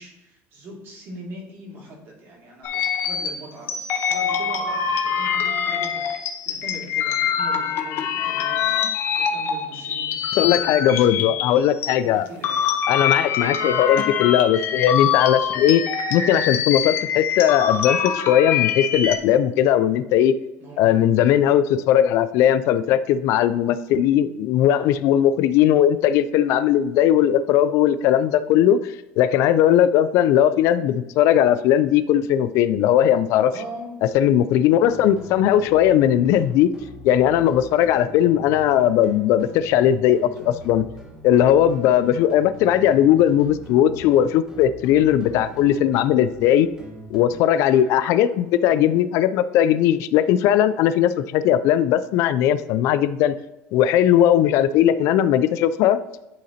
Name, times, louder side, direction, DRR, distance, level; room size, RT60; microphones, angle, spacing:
voice 1, 0.0-11.4 11.9-12.7 13.4-13.7 20.6-20.8 33.5-34.1 47.5-48.0, right 1 dB, 45° right, -2 dB, 2.4 m, -41 dB
sound 1, 2.6-11.9 12.3-19.2, left 7 dB, 45° left, 0.9 m, -24 dB
voice 2, 10.3-12.3 12.9-15.8 16.1-20.3 20.8-33.5 34.1-36.7 37.0-40.8 41.2-46.7 47.1-53.4 53.7-56.0, left 10 dB, 60° left, 13 dB, 0.3 m, -18 dB
sound 2, 34.9-47.4, left 1 dB, 10° right, 1.2 m, -42 dB
11.5 x 3.8 x 2.8 m, 0.96 s
cardioid pair, 155°, 6 cm